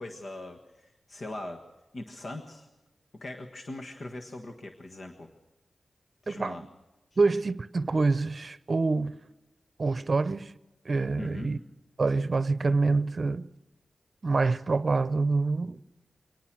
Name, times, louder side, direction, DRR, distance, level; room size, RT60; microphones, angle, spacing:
voice 1, 0.0-1.6 1.9-2.7 3.1-5.3 6.2-6.7 7.1-7.2 11.2-11.5, left 2 dB, 60° left, 1.5 m, -40 dB
voice 2, 7.2-9.2 9.8-10.5 10.9-11.6 12.0-13.5 14.2-15.8, right 3 dB, 50° right, 0.7 m, -26 dB
24.5 x 19.0 x 6.2 m
cardioid pair, 65°, 0 cm